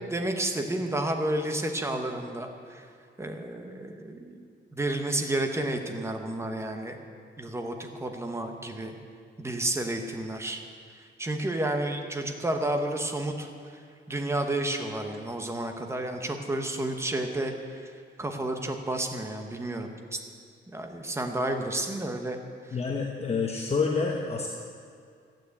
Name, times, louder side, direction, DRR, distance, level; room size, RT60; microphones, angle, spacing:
voice 1, 0.1-2.9 3.2-4.4 4.7-7.0 7.4-8.9 9.4-10.6 11.2-13.5 14.1-17.9 18.2-20.2 20.7-22.4, right 1 dB, 15° right, 4 dB, 1.1 m, -31 dB
voice 2, 22.7-24.5, left 4 dB, 30° left, 0 dB, 1.0 m, -28 dB
12.0 x 9.1 x 8.4 m, 2.3 s
wide cardioid pair, 160°, 20 cm